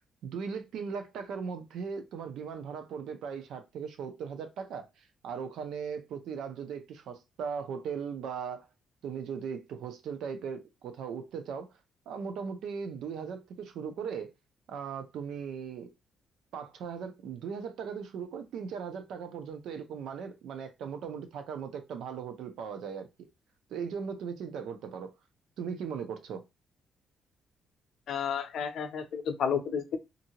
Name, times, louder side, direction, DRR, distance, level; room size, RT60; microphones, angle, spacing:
voice 1, 0.2-8.7 9.0-11.7 12.1-14.3 14.7-15.9 16.5-23.3 23.7-25.1 25.6-26.4, right 6 dB, 70° right, 0.5 m, -38 dB
voice 2, 28.1-30.0, left 7 dB, 55° left, 0.5 m, -31 dB
2.7 x 2.5 x 2.8 m
cardioid pair, 165°, 0 cm